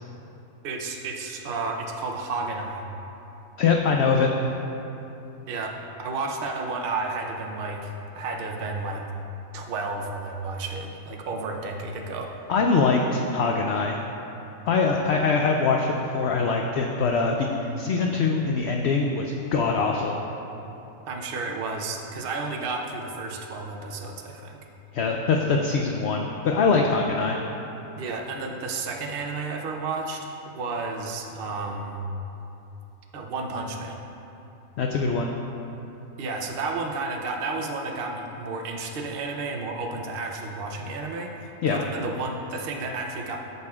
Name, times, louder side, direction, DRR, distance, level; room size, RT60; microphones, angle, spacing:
voice 1, 0.6-2.8 5.5-9.1 9.5-12.3 21.1-24.6 28.0-32.0 33.1-34.0 36.2-43.4, right 3 dB, 50° right, 2 dB, 0.8 m, -32 dB
voice 2, 3.6-4.3 12.5-14.0 14.7-20.2 24.9-27.4 34.8-35.3 41.6-41.8, left 4 dB, 65° left, 1 dB, 0.7 m, -23 dB
13.0 x 6.8 x 2.4 m, 3.0 s
omnidirectional pair, 1.5 m